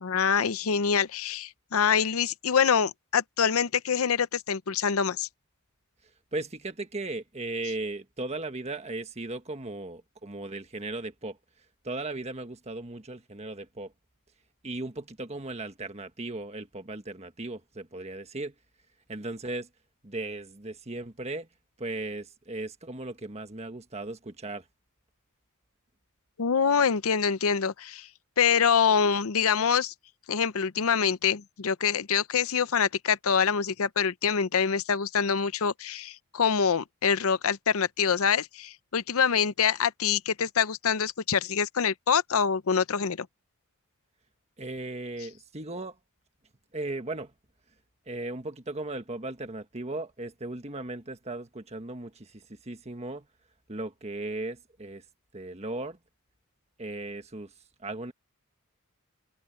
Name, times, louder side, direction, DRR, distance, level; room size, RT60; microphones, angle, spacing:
voice 1, 0.0-5.3 26.4-28.1 28.4-29.9 30.3-43.3, left 6 dB, 70° left, 0.7 m, -25 dB
voice 2, 6.3-11.4 11.8-13.9 14.6-18.5 19.1-19.7 20.0-21.5 21.8-24.6 44.6-46.0 46.7-47.3 48.1-53.2 53.7-55.0 55.3-56.0 56.8-57.5 57.8-58.1, right 2 dB, 30° right, 1.5 m, -37 dB
head